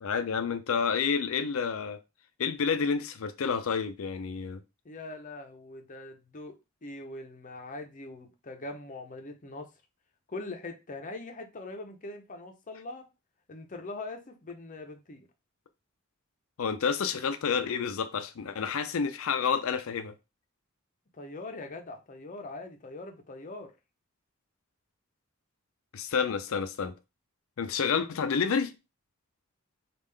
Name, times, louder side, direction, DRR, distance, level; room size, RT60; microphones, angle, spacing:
voice 1, 0.0-2.0 2.4-4.6 16.6-20.1 25.9-26.9 27.6-28.7, left 6 dB, 80° left, 0.5 m, -29 dB
voice 2, 4.8-6.6 6.8-9.7 10.3-13.0 13.5-15.3 21.1-23.7, left 2 dB, 40° left, 0.7 m, -42 dB
3.6 x 2.4 x 3.3 m
head